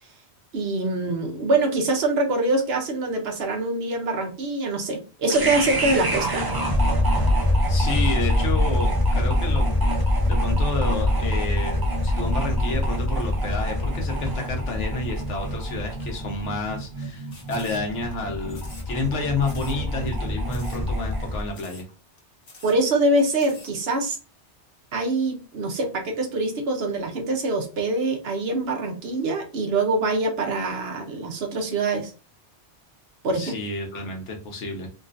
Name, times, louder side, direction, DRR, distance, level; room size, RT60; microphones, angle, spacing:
voice 1, 0.5-6.4 22.6-24.2 24.9-32.1 33.2-33.5, right 2 dB, 65° right, 3 dB, 0.9 m, -24 dB
sound 1, 5.3-21.5, equal, 30° right, 0.4 m, -24 dB
voice 2, 7.7-9.8 10.3-21.9 33.3-34.9, left 3 dB, 85° left, 2 dB, 1.2 m, -30 dB
sound 2, 17.3-18.1 18.5-19.1 19.4-19.8 20.1-20.2 20.5-20.9 21.1-21.2 21.5-21.9 22.2-22.3 22.4-22.8 23.2-23.7, left 3 dB, 55° left, 1.1 m, -47 dB
3.6 x 2.4 x 2.5 m, 0.33 s
omnidirectional pair, 1.2 m